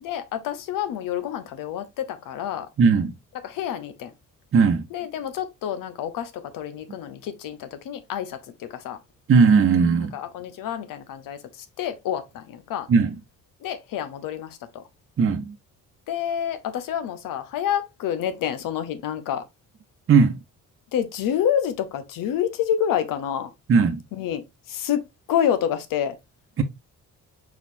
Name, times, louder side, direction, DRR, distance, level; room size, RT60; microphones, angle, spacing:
voice 1, 0.0-2.7 3.4-4.1 4.9-9.0 10.1-12.9 13.6-14.8 16.1-19.4 20.9-23.5 24.1-25.0 25.3-26.2, left 9 dB, 75° left, 1.0 m, -28 dB
voice 2, 2.8-3.1 4.5-4.9 9.3-10.2 12.9-13.1 15.2-15.5 20.1-20.4 23.7-24.0 26.6-26.7, right 5 dB, 40° right, 0.9 m, -18 dB
4.7 x 4.3 x 2.7 m
cardioid pair, 95°, 33 cm